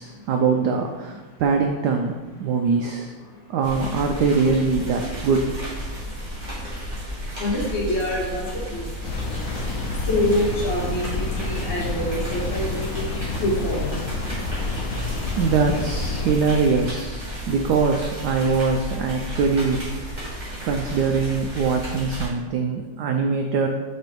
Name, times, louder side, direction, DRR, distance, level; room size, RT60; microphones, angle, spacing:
voice 1, 0.0-3.1 3.5-5.5 14.8-14.9 15.4-19.8 20.6-23.7, right 5 dB, 85° right, 3 dB, 0.9 m, -22 dB
sound 1, 3.6-22.3, equal, 20° right, 1.9 m, -33 dB
voice 2, 7.4-8.8 10.1-13.2 13.4-14.0, left 1 dB, 65° left, -5 dB, 2.3 m, -26 dB
sound 2, 9.0-16.4, left 3 dB, 85° left, 1.6 m, -29 dB
5.3 x 4.4 x 4.5 m, 1.3 s
omnidirectional pair, 2.3 m